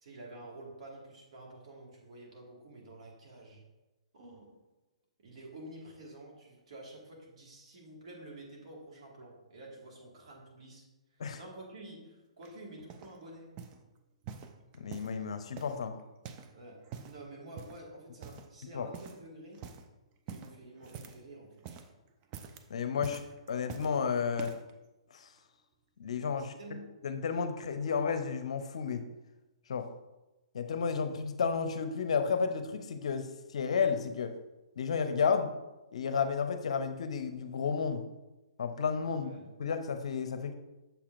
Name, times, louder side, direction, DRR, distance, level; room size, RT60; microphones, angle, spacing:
voice 1, 0.0-3.6 4.1-4.6 5.2-10.9 11.1-13.5 16.5-19.7 20.3-21.6 26.3-27.0 39.1-39.5, right 1 dB, 65° right, -2 dB, 1.8 m, -49 dB
sound 1, 12.4-13.2 13.6-13.8 14.2-15.2 15.6-16.6 16.8-17.2 17.6-17.9 18.2-18.6 18.9-19.3 19.5-19.9 20.3-21.3 21.5-21.9 22.2-22.7 23.0-24.0 24.4-24.7 25.4-25.5, right 7 dB, 30° right, 0.5 m, -46 dB
voice 2, 14.8-15.9 18.7-18.9 22.7-23.2 23.5-24.5 25.1-25.3 26.0-26.5 27.0-29.0 29.7-29.9 30.5-34.3 34.8-35.5 35.9-38.0 38.6-39.3 39.6-40.5, left 6 dB, 70° left, 8 dB, 0.6 m, -32 dB
6.9 x 5.7 x 2.5 m, 1.1 s
hypercardioid pair, 135°, 3 cm